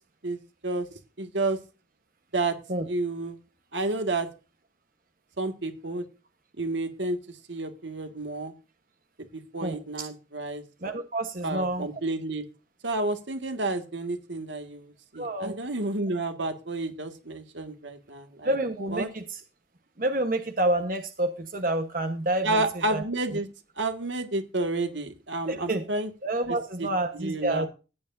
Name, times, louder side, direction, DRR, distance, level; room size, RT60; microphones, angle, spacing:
voice 1, 0.2-0.9 1.2-1.6 2.3-2.6 2.9-3.4 3.7-4.3 5.4-6.0 6.6-7.2 7.5-8.5 9.3-10.6 11.4-12.4 12.8-18.5 18.9-19.1 22.4-23.5 23.8-26.1 26.5-26.9 27.1-27.7, right 2 dB, 85° right, 6 dB, 1.8 m, -30 dB
voice 2, 9.6-10.1 10.8-11.9 15.1-15.5 18.4-19.4 20.0-22.6 22.9-23.0 23.3-23.4 25.5-25.8 26.2-27.7, right 1 dB, 50° right, 7 dB, 1.1 m, -28 dB
15.0 x 9.3 x 2.6 m, 0.31 s
head